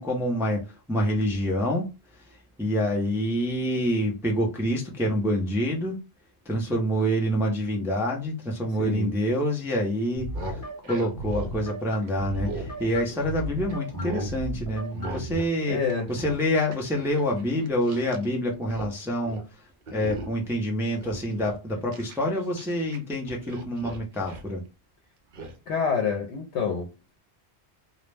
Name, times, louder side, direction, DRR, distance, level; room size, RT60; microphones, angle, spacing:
voice 1, 0.0-1.9 2.6-6.0 6.5-10.6 10.9-15.8 16.1-19.4 19.9-24.6, equal, 5° right, 0.4 m, -27 dB
sound 1, 10.1-13.4 13.7-14.4 14.9-15.6 15.8-18.3 18.5-18.9 19.2-19.5 19.9-20.5 20.9-23.0 23.3-24.5 25.3-25.5, right 1 dB, 55° right, 0.6 m, -38 dB
sound 2, 10.2-15.3, equal, 55° left, 1.1 m, -36 dB
voice 2, 15.7-16.1 25.7-26.9, left 6 dB, 85° left, 0.9 m, -27 dB
2.3 x 2.0 x 3.2 m
omnidirectional pair, 1.1 m